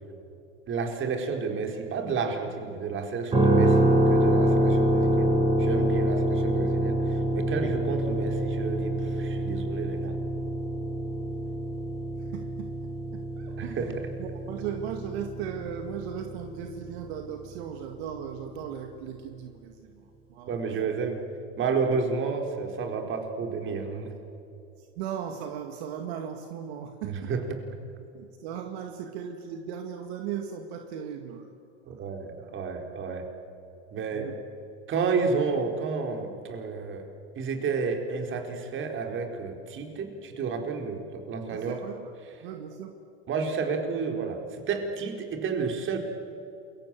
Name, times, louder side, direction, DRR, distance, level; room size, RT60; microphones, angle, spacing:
voice 1, 0.7-5.3 5.6-7.0 7.3-10.1 13.6-13.9 20.5-21.2 21.6-24.1 27.0-27.6 31.9-33.3 33.9-34.3 34.9-37.1 37.4-41.8 43.3-46.0, right 5 dB, 35° right, 4 dB, 4.5 m, -31 dB
sound 1, 3.3-17.3, right 1 dB, 15° right, 6.7 m, -26 dB
voice 2, 12.3-20.8 24.8-27.3 28.1-31.5 31.8-32.1 34.1-34.4 41.5-42.1 42.4-42.9, right 8 dB, 65° right, 5 dB, 2.2 m, -37 dB
28.5 x 23.0 x 7.7 m, 2.9 s
supercardioid pair, 115°, 34 cm